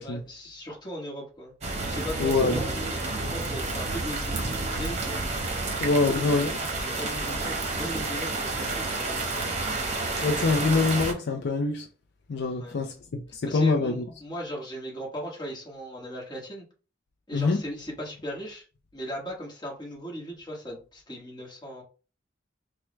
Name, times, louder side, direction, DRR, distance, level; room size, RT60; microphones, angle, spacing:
voice 1, 0.0-1.5 1.9-5.2 5.9-6.2 6.8-9.2 12.6-12.8 13.5-16.6 17.3-18.6 18.9-21.8, equal, 25° left, 1.3 m, -38 dB
sound 1, 1.6-11.1, right 2 dB, 35° right, 0.8 m, -30 dB
voice 2, 2.2-2.6 5.8-6.6 10.2-11.9 12.3-14.0 17.3-17.6, left 3 dB, 65° left, 0.4 m, -25 dB
4.5 x 2.1 x 3.2 m
head